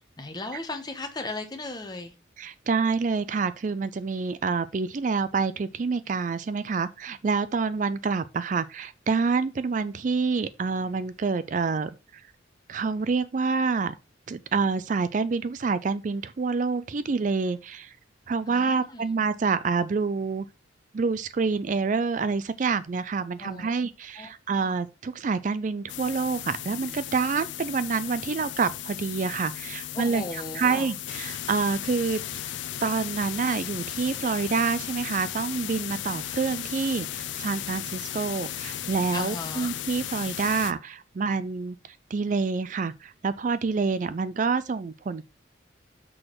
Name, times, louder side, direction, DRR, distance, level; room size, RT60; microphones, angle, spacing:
voice 1, 0.2-2.1 18.5-19.0 23.4-23.7 24.2-24.3 24.5-24.8 29.9-30.9 39.1-39.7, left 2 dB, 20° left, 1.1 m, -36 dB
voice 2, 2.4-12.3 12.7-13.9 14.3-18.0 18.3-20.5 20.9-30.2 30.5-32.5 32.8-45.2, right 4 dB, 40° right, 0.3 m, -27 dB
sound 1, 25.9-40.7, left 11 dB, 70° left, 0.5 m, -35 dB
6.2 x 4.8 x 6.1 m
head